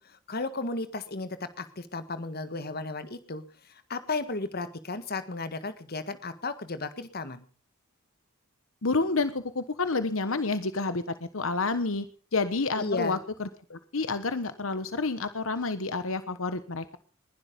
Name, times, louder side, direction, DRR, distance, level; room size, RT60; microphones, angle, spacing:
voice 1, 0.0-7.4 12.8-13.2, left 3 dB, 50° left, 11 dB, 1.6 m, -34 dB
voice 2, 8.8-17.0, left 3 dB, 70° left, 12 dB, 1.2 m, -29 dB
21.0 x 11.5 x 5.3 m, 0.40 s
head